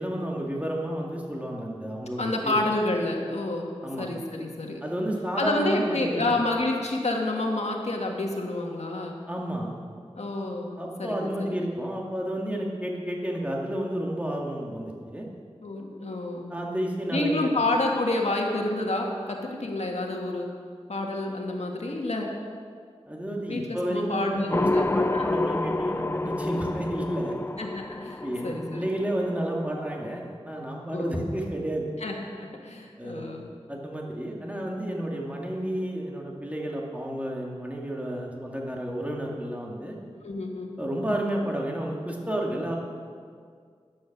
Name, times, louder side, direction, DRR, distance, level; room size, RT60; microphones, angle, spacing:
voice 1, 0.0-2.6 3.8-4.1 4.8-6.4 9.3-9.7 10.8-15.3 16.5-17.5 23.1-27.4 28.2-31.9 33.0-33.3 33.7-40.0 40.8-42.8, right 1 dB, 10° right, -2 dB, 2.3 m, -31 dB
voice 2, 2.2-4.8 5.4-9.2 10.2-11.7 15.6-16.5 17.1-20.5 20.9-22.3 23.5-24.8 25.1-25.3 27.6-28.8 30.9-31.3 32.0-33.5 40.2-40.8, left 2 dB, 75° left, 0 dB, 1.8 m, -29 dB
sound 1, 24.5-30.3, left 2 dB, 20° left, 0.3 m, -29 dB
14.0 x 10.0 x 6.1 m, 2.1 s
wide cardioid pair, 65°, 11 cm